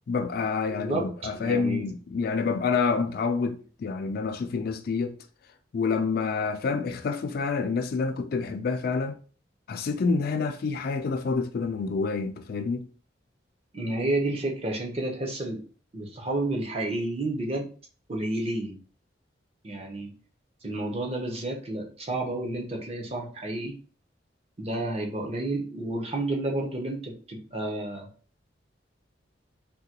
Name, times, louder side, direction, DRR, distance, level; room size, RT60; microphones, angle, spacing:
voice 1, 0.1-5.2 5.7-9.2 9.7-12.9, left 4 dB, 55° left, 0.3 m, -28 dB
voice 2, 0.7-1.1 1.4-1.9 13.7-15.6 15.9-17.7 18.1-18.8 19.6-20.1 20.6-23.8 24.6-28.1, right 2 dB, 35° right, 0.7 m, -30 dB
3.6 x 2.2 x 2.8 m
head